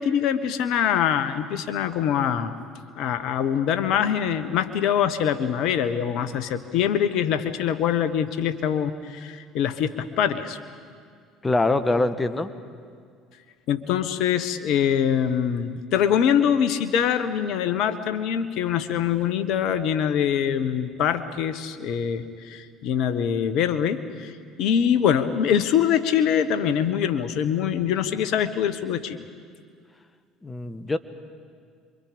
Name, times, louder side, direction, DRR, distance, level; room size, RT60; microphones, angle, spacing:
voice 1, 0.0-2.5 3.0-10.6 13.7-24.3 24.6-29.2, left 8 dB, 65° left, 11 dB, 1.3 m, -24 dB
voice 2, 11.4-12.5 30.4-31.0, left 2 dB, 20° left, 11 dB, 1.4 m, -23 dB
27.5 x 23.5 x 5.2 m, 2.1 s
hypercardioid pair, 65°, 0 cm